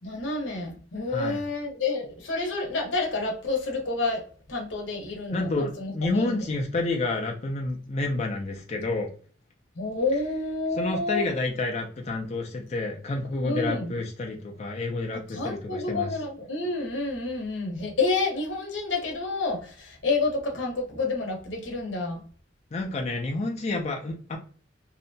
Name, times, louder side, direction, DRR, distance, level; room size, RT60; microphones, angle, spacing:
voice 1, 0.0-6.4 9.8-11.3 13.4-13.9 15.3-22.2, left 3 dB, 90° left, 1 dB, 0.9 m, -29 dB
voice 2, 1.1-1.4 5.3-9.1 10.7-16.1 22.7-24.4, left 2 dB, 35° left, 1 dB, 0.4 m, -29 dB
2.7 x 2.1 x 2.6 m, 0.42 s
head